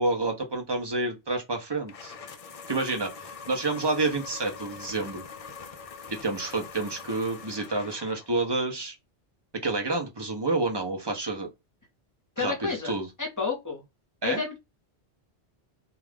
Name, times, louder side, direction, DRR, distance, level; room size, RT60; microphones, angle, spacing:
voice 1, 0.0-2.1 2.7-3.1 3.5-5.2 6.1-8.9 9.5-11.5 12.4-13.1 14.2-14.4, right 2 dB, 30° right, 0.6 m, -29 dB
sound 1, 1.9-8.4, left 5 dB, 60° left, 0.4 m, -43 dB
voice 2, 12.4-13.8 14.2-14.6, left 5 dB, 20° left, 0.9 m, -31 dB
2.4 x 2.3 x 3.3 m
omnidirectional pair, 1.1 m